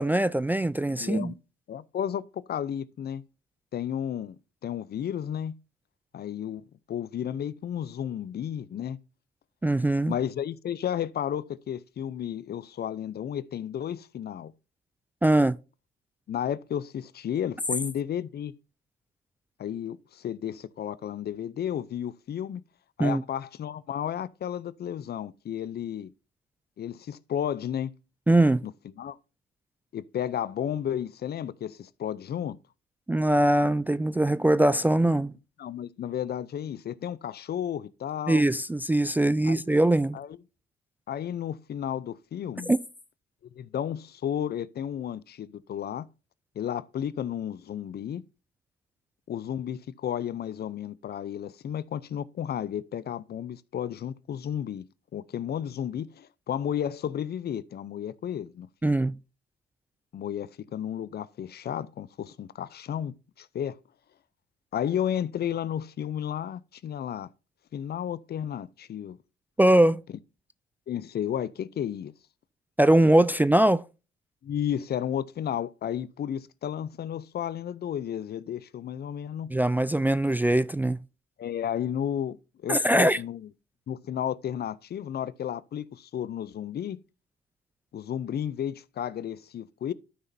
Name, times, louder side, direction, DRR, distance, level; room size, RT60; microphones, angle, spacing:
voice 1, 0.0-1.3 9.6-10.1 15.2-15.6 23.0-23.2 28.3-28.7 33.1-35.3 38.3-40.2 42.7-42.8 58.8-59.2 69.6-70.0 72.8-73.8 79.5-81.0 82.7-83.2, right 1 dB, 10° right, 0.3 m, -22 dB
voice 2, 1.0-1.4 1.7-3.2 3.7-4.4 4.6-5.6 6.1-9.0 10.1-14.5 16.3-18.5 19.6-22.6 23.0-26.1 26.8-27.9 28.6-28.7 29.0-29.2 29.9-32.6 35.6-38.5 39.4-39.7 40.1-40.4 41.1-42.7 43.6-46.1 46.6-48.2 49.3-54.8 55.1-58.9 60.1-63.7 64.7-67.3 67.7-69.2 70.9-72.1 74.4-79.5 81.4-82.4 82.6-83.5 83.9-87.0 87.9-89.9, left 9 dB, 50° left, 0.6 m, -33 dB
12.5 x 5.8 x 2.7 m
supercardioid pair, 75°, 21 cm